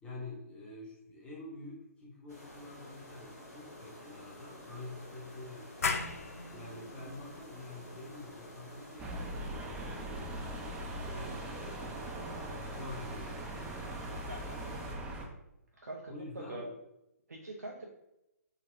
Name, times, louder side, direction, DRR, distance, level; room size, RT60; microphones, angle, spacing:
voice 1, 0.0-6.0 6.5-13.7 16.1-16.7, left 2 dB, 15° left, -4 dB, 0.7 m, -48 dB
sound 1, 2.3-14.9, equal, 85° left, 1.3 m, -51 dB
sound 2, 5.8-11.2, left 5 dB, 65° left, 0.4 m, -40 dB
sound 3, 9.0-15.3, right 1 dB, 10° right, 0.4 m, -40 dB
voice 2, 14.3-14.6 15.8-16.7 17.3-17.8, right 2 dB, 90° right, -1 dB, 0.4 m, -43 dB
3.9 x 2.0 x 2.5 m, 0.87 s
figure-of-eight pair, 130°, 9 cm